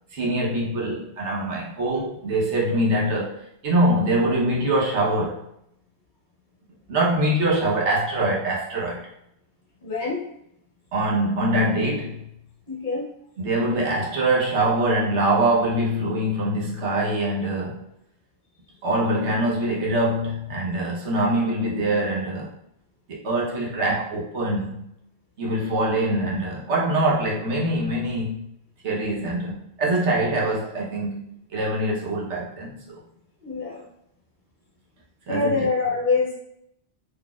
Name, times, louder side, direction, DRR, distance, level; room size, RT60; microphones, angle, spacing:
voice 1, 0.1-5.4 6.9-9.1 10.9-12.3 13.4-17.8 18.8-22.5 23.1-24.9 25.4-28.5 28.8-33.0 35.3-35.5, right 1 dB, 85° right, -4 dB, 1.2 m, -24 dB
voice 2, 9.8-10.2 12.7-13.1 33.4-33.9 35.3-36.4, left 4 dB, 50° left, -3 dB, 0.9 m, -25 dB
3.9 x 3.2 x 2.3 m, 0.77 s
omnidirectional pair, 1.1 m